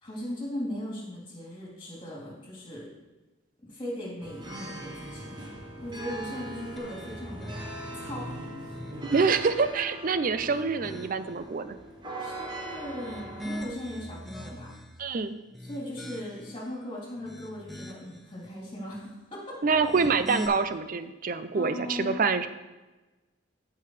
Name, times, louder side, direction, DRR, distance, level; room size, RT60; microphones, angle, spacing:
voice 1, 0.0-2.9 3.6-7.5 8.0-8.3 8.6-8.8 12.2-14.7 15.6-19.6 21.3-22.2, left 1 dB, 25° left, -5 dB, 3.4 m, -38 dB
sound 1, 4.2-13.6, right 1 dB, 20° right, 1.1 m, -40 dB
sound 2, 6.8-8.1 8.6-9.7 10.2-11.3 12.8-15.0 15.5-16.6 17.1-18.2 19.7-20.5, equal, ahead, 0.7 m, -42 dB
voice 2, 9.0-11.8 15.0-15.4 19.6-22.5, right 5 dB, 40° right, 11 dB, 0.4 m, -26 dB
14.0 x 5.7 x 3.3 m, 1.1 s
head